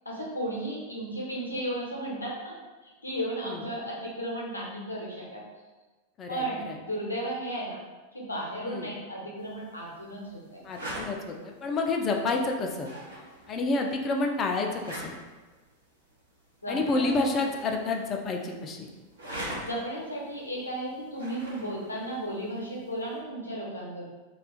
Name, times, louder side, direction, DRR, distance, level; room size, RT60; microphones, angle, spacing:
voice 1, 0.0-2.5 2.8-5.4 6.3-7.8 8.1-10.6 16.6-17.3 19.6-24.0, right 1 dB, 80° left, -3 dB, 0.7 m, -34 dB
voice 2, 6.2-6.8 8.6-8.9 10.6-12.9 13.5-15.1 16.7-18.9, left 3 dB, 25° left, 2 dB, 0.4 m, -29 dB
sound 1, 9.4-23.2, right 1 dB, 75° right, 0.8 m, -45 dB
2.4 x 2.4 x 3.8 m, 1.2 s
figure-of-eight pair, 90°, 0 cm